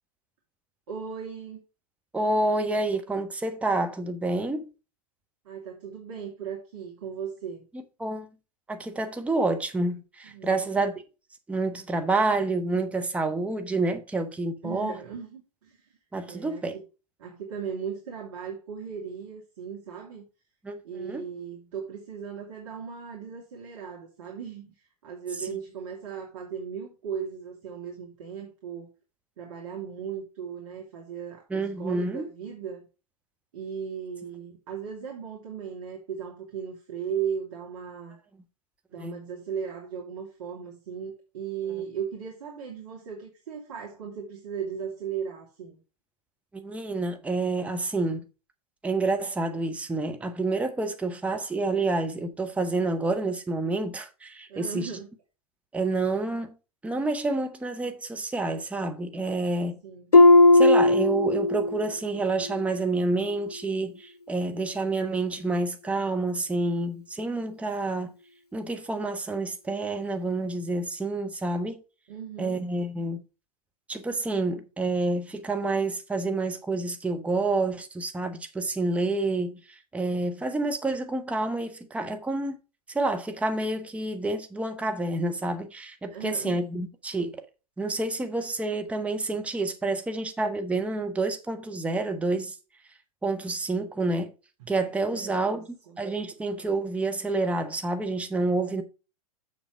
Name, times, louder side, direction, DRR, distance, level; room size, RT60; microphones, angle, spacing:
voice 1, 0.9-1.6 5.4-7.7 10.2-10.6 14.6-16.0 16.3-16.8 17.2-20.2 20.8-28.9 29.4-32.8 33.5-38.2 38.9-45.8 54.5-55.1 59.8-60.2 72.1-72.7 86.1-86.7 95.1-96.0, right 7 dB, 55° right, 2.6 m, -37 dB
voice 2, 2.1-4.7 8.0-8.3 8.7-10.9 11.5-15.0 16.1-16.8 20.6-21.2 25.4-25.6 31.5-32.3 39.0-39.2 46.5-48.3 48.8-54.9 55.7-56.5 56.8-59.8 60.5-68.1 68.5-71.8 72.4-73.2 73.9-82.6 82.9-87.4 87.8-92.6 93.2-94.3 94.7-98.8, right 2 dB, 5° right, 1.2 m, -28 dB
Harp, 60.1-61.9 62.2-62.7 63.2-63.3, left 2 dB, 85° left, 0.6 m, -17 dB
7.2 x 7.0 x 4.7 m
figure-of-eight pair, 100°, 19 cm